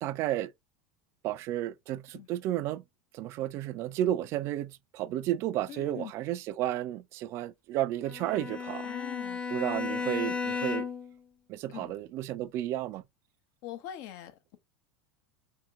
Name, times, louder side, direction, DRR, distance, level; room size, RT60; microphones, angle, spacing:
voice 1, 0.0-0.5 1.2-2.8 3.1-8.9 9.5-10.9 11.5-13.0, right 13 dB, 50° right, 0.3 m, -32 dB
voice 2, 5.7-6.1 8.8-9.4 11.7-11.9 13.6-14.6, left 11 dB, 55° left, 0.8 m, -43 dB
Bowed string instrument, 8.0-11.2, left 5 dB, 20° left, 0.8 m, -34 dB
3.6 x 2.8 x 2.3 m
hypercardioid pair, 85°, 6 cm